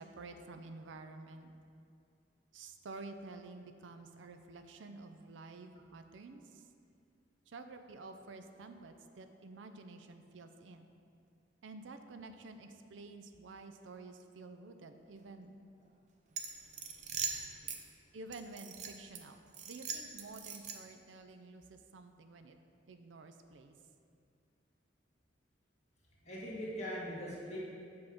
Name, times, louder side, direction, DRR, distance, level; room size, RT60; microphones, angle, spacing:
voice 1, 0.0-1.5 2.5-6.6 7.5-10.9 11.6-15.6 18.1-19.4 19.7-22.6 22.9-23.7, right 3 dB, 85° right, 7 dB, 0.5 m, -50 dB
sound 1, 16.3-17.8 18.3-19.2 19.5-21.0, right 6 dB, 40° right, 0.6 m, -41 dB
voice 2, 26.2-27.6, equal, 35° left, -7 dB, 1.7 m, -41 dB
7.7 x 3.6 x 6.1 m, 2.4 s
head